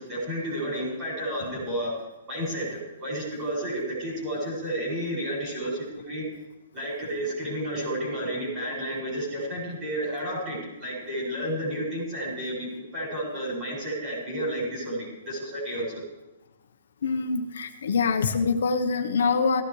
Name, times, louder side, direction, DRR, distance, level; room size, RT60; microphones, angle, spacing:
voice 1, 0.0-1.9 2.3-6.2 6.7-16.0, equal, 15° right, -5 dB, 6.0 m, -31 dB
voice 2, 17.0-19.6, left 5 dB, 75° left, 5 dB, 1.0 m, -24 dB
18.0 x 15.5 x 3.2 m, 1.0 s
hypercardioid pair, 180°, 0 cm